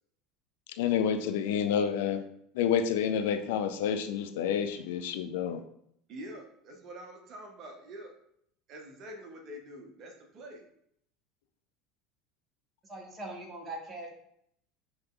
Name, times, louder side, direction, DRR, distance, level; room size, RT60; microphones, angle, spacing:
voice 1, 0.8-2.2 2.5-5.6, left 8 dB, 65° left, 7 dB, 0.4 m, -29 dB
voice 2, 6.1-8.1 8.7-10.6, right 1 dB, 45° right, 3 dB, 0.8 m, -46 dB
voice 3, 12.9-14.1, right 2 dB, 25° right, 0 dB, 1.2 m, -41 dB
5.2 x 2.9 x 2.3 m, 0.70 s
figure-of-eight pair, 75°, 0 cm